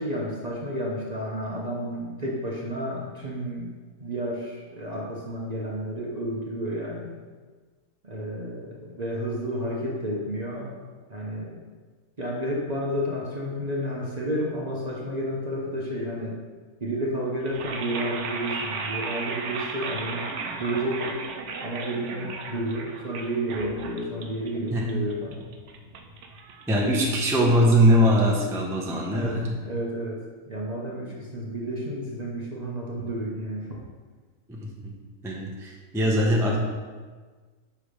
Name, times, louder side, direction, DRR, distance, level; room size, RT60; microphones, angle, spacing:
voice 1, 0.0-3.7 4.0-7.1 8.0-10.8 11.1-11.6 12.2-16.4 16.8-21.2 21.6-25.4 29.1-30.2 30.5-33.8, equal, 35° right, -3 dB, 0.8 m, -31 dB
sound 1, 17.4-27.5, right 4 dB, 60° right, 0.9 m, -36 dB
voice 2, 26.7-29.6 34.5-34.9 35.2-36.6, equal, 5° right, -2 dB, 0.6 m, -22 dB
6.0 x 5.0 x 5.1 m, 1.4 s
omnidirectional pair, 1.6 m